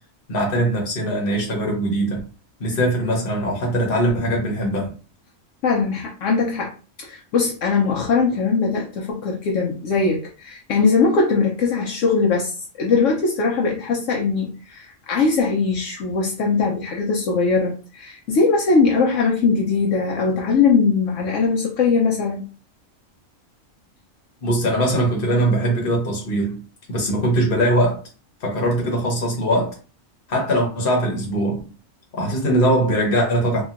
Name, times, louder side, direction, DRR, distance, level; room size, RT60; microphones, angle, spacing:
voice 1, 0.3-2.2 2.6-4.9 24.4-26.6 26.9-28.0 28.4-29.7 30.3-31.6 32.2-33.6, right 1 dB, 45° left, 1.1 m, -21 dB
voice 2, 5.6-6.7 7.0-22.4, left 4 dB, 75° left, 0.9 m, -20 dB
2.8 x 2.5 x 2.4 m
omnidirectional pair, 1.4 m